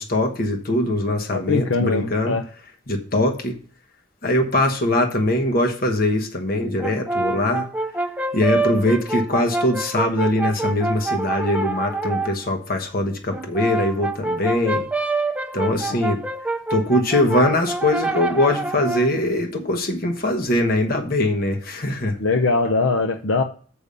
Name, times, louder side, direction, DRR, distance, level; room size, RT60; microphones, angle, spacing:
voice 1, 0.0-2.3 2.9-3.6 4.2-7.7 8.3-14.8 15.5-16.2 16.7-22.2, left 1 dB, 45° left, 4 dB, 1.2 m, -22 dB
voice 2, 1.3-2.4 15.9-16.0 22.2-23.4, left 3 dB, 75° left, 6 dB, 0.7 m, -21 dB
Brass instrument, 6.8-12.4 13.3-19.2, right 2 dB, 5° right, 0.4 m, -26 dB
6.9 x 5.3 x 6.8 m, 0.43 s
head